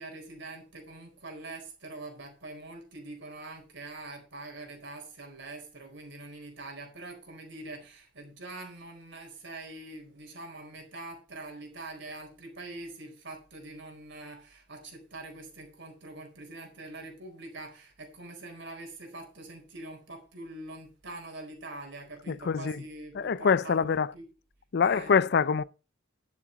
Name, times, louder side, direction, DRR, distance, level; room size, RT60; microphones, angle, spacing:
voice 1, 0.0-24.3 24.8-25.1, right 2 dB, 65° right, 4.4 m, -44 dB
voice 2, 22.3-22.8 23.2-24.1 24.7-25.6, left 6 dB, 55° left, 0.5 m, -25 dB
11.0 x 7.3 x 5.2 m
head